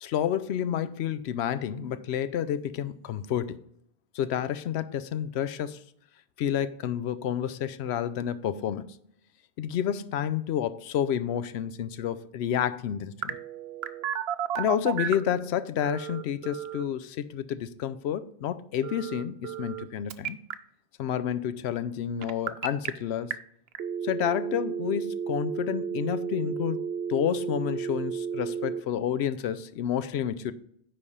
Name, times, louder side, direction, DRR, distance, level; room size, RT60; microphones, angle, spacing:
voice 1, 0.0-3.6 4.1-5.8 6.4-8.9 9.6-13.4 14.6-20.4 21.0-23.3 24.0-26.8 27.1-30.5, left 9 dB, 90° left, 0.8 m, -30 dB
Telephone, 13.2-15.3 15.8-16.8 18.8-19.8 20.1-20.5 22.2-22.9 23.3-23.4 23.7-28.8, right 7 dB, 75° right, 0.8 m, -32 dB
9.8 x 3.3 x 5.4 m
omnidirectional pair, 1.1 m